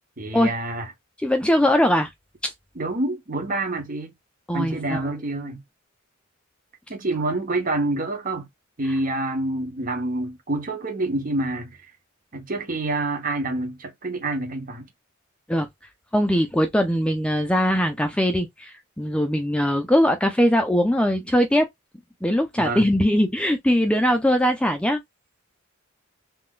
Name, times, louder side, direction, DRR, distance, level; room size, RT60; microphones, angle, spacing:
voice 1, 0.2-0.9 2.7-4.1 4.5-5.6 6.9-8.5 8.8-11.8 12.3-14.9 22.6-22.9, right 2 dB, 40° right, 1.1 m, -27 dB
voice 2, 1.2-2.1 2.4-2.5 4.5-5.1 15.5-15.7 16.1-21.7 22.2-25.0, equal, 5° left, 0.5 m, -21 dB
3.7 x 2.3 x 2.4 m
head